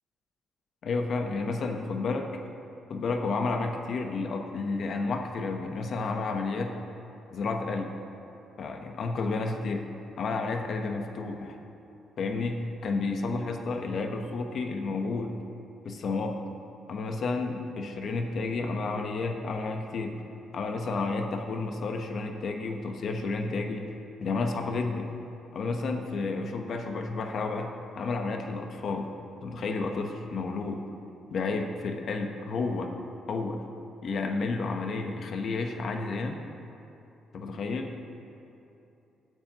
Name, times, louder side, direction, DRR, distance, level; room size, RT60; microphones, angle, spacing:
voice 1, 0.8-2.2 2.9-6.8 7.3-7.9 8.6-9.8 10.2-11.6 12.2-15.3 15.8-16.4 16.9-20.2 20.5-23.9 24.2-25.1 25.5-29.1 29.4-30.8 31.3-32.9 33.3-33.6 34.0-36.4 37.3-37.9, left 3 dB, 60° left, 4 dB, 1.0 m, -31 dB
16.5 x 9.3 x 3.0 m, 2.8 s
cardioid pair, 90°, 0 cm